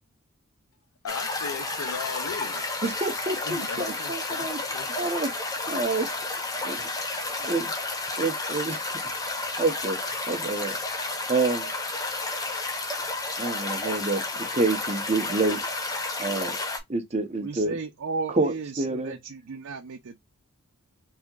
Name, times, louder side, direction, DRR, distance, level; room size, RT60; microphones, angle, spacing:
voice 1, 1.0-2.7 3.5-4.9, left 5 dB, 80° left, 0.5 m, -37 dB
sound 1, 1.1-16.8, left 3 dB, 15° left, 0.6 m, -31 dB
voice 2, 2.8-4.6 5.0-5.3 5.7-6.1 6.6-6.8 7.4-7.7 8.2-8.8 9.6-10.0 10.3-10.8 11.3-11.7 13.4-15.6 16.2-16.6 16.9-17.7 18.3-19.2, right 3 dB, 30° right, 0.8 m, -27 dB
voice 3, 17.4-20.2, right 4 dB, 75° right, 0.5 m, -35 dB
4.1 x 2.9 x 2.3 m
head